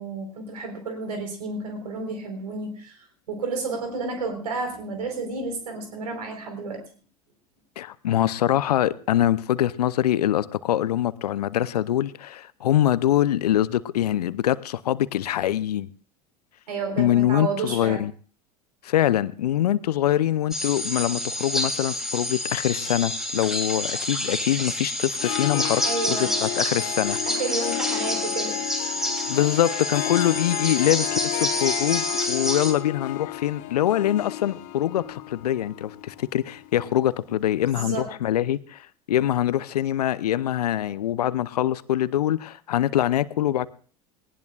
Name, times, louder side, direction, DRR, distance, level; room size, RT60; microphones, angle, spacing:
voice 1, 0.0-6.8 16.7-18.0 25.8-26.4 27.3-28.6 37.3-37.4 37.7-38.1, right 4 dB, 80° right, 4.3 m, -31 dB
voice 2, 7.8-15.9 17.0-18.1 18.8-25.8 26.1-27.2 29.3-43.7, left 12 dB, 75° left, 0.7 m, -24 dB
sound 1, 20.5-32.7, left 1 dB, ahead, 3.1 m, -28 dB
Harp, 25.1-37.0, left 16 dB, 60° left, 1.3 m, -32 dB
19.5 x 18.5 x 2.5 m
figure-of-eight pair, 75°, 20 cm